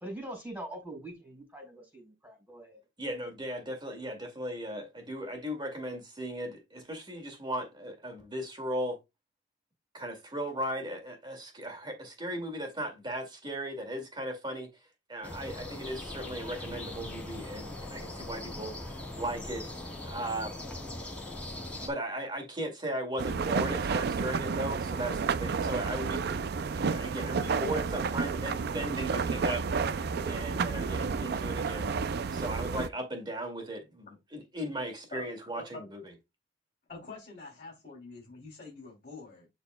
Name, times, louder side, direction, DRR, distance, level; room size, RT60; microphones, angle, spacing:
voice 1, 0.0-2.8, right 1 dB, 10° right, 4.1 m, -43 dB
voice 2, 3.0-9.0 9.9-14.7 15.1-19.7 20.0-20.6 21.8-26.2 26.7-29.9 30.2-31.9 32.3-36.1, right 1 dB, 25° right, 2.2 m, -37 dB
sound 1, 15.2-21.9, left 1 dB, 10° left, 2.7 m, -40 dB
sound 2, 23.2-32.9, right 5 dB, 60° right, 0.4 m, -31 dB
voice 3, 36.9-39.5, left 3 dB, 45° left, 2.9 m, -46 dB
11.5 x 4.2 x 2.2 m
head